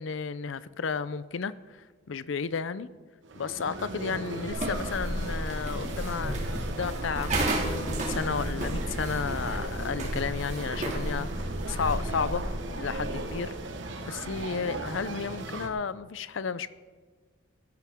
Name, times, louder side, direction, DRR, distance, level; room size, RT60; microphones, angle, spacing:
voice 1, 0.0-1.5 2.1-2.9 3.4-12.4 12.8-13.5 14.0-16.7, left 5 dB, 75° left, 16 dB, 0.5 m, -33 dB
sound 1, 3.2-15.7, right 2 dB, 65° right, 1.2 m, -37 dB
sound 2, 4.5-13.4, right 1 dB, 35° right, 2.2 m, -33 dB
sound 3, 6.5-12.0, right 1 dB, 85° right, 1.4 m, -42 dB
17.0 x 13.0 x 3.6 m, 1.4 s
head